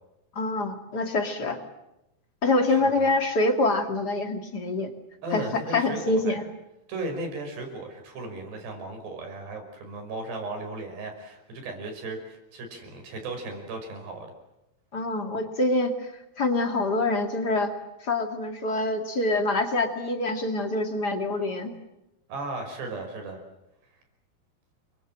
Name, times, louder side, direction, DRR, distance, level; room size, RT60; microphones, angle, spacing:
voice 1, 0.4-1.6 2.4-4.9 5.3-6.5 14.9-16.1 16.4-17.7 18.0-21.7, left 2 dB, 30° left, 5 dB, 2.3 m, -25 dB
voice 2, 2.7-3.1 5.2-6.4 6.9-14.3 22.3-23.4, right 2 dB, 90° right, 4 dB, 7.7 m, -36 dB
29.5 x 23.5 x 7.6 m, 0.91 s
omnidirectional pair, 4.7 m